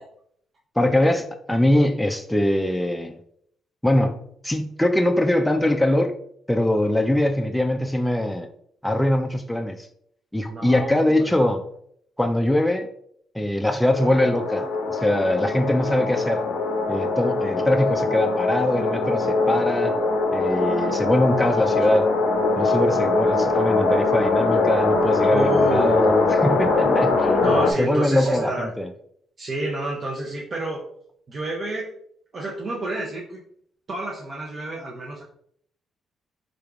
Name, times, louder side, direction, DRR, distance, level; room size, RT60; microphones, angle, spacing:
voice 1, 0.8-3.2 3.8-4.2 4.4-6.2 6.5-8.5 8.8-9.9 10.3-11.6 12.2-12.9 13.3-16.4 16.9-20.0 20.3-22.1 22.6-27.5 27.8-28.9, left 1 dB, 5° left, 0.3 m, -22 dB
voice 2, 10.5-11.3 25.3-26.0 27.4-28.7 29.4-30.9 31.3-31.9 32.3-33.4 33.9-35.2, right 2 dB, 45° right, 0.6 m, -29 dB
sound 1, 13.9-27.7, left 3 dB, 85° left, 0.5 m, -22 dB
3.8 x 3.4 x 2.3 m
cardioid pair, 90°, 0 cm